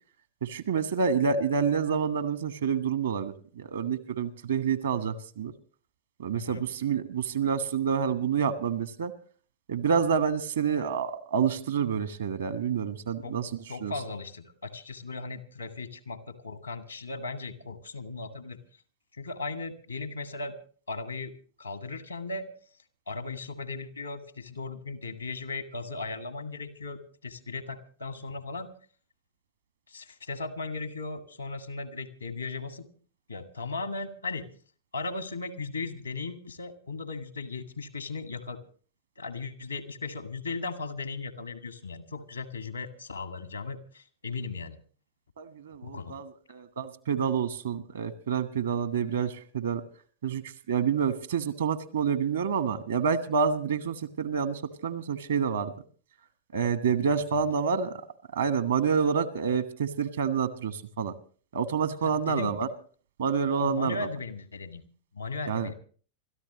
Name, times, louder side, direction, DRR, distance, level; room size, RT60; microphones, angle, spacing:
voice 1, 0.4-5.5 6.2-9.1 9.7-13.5 13.8-13.9 45.4-49.8 50.2-50.4 50.7-55.7 56.5-58.0 58.3-61.1 61.5-62.7 63.2-64.0 65.5-65.7, right 6 dB, 65° right, 13 dB, 1.2 m, -28 dB
voice 2, 13.7-18.6 19.2-20.5 20.9-21.3 21.6-22.5 23.1-28.7 29.9-32.9 33.3-34.4 34.9-38.6 39.2-44.8 45.8-46.2 57.3-57.4 62.0-62.5 63.6-64.8 65.1-65.7, left 3 dB, 80° left, 9 dB, 1.7 m, -37 dB
27.0 x 13.5 x 3.0 m, 0.42 s
figure-of-eight pair, 90°, 0 cm